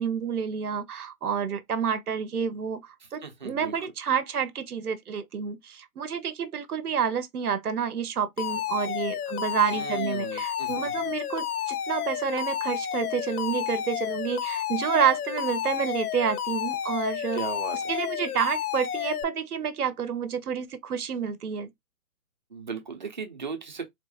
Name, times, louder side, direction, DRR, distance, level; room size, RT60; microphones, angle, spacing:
voice 1, 0.0-17.4 17.9-21.7, right 7 dB, 85° right, 0.9 m, -29 dB
voice 2, 3.2-3.8 9.7-11.1 17.3-17.9 22.5-23.9, right 5 dB, 35° right, 0.6 m, -37 dB
Alarm, 8.4-19.2, left 10 dB, 85° left, 0.6 m, -31 dB
3.8 x 2.7 x 2.3 m
hypercardioid pair, 170°, 44 cm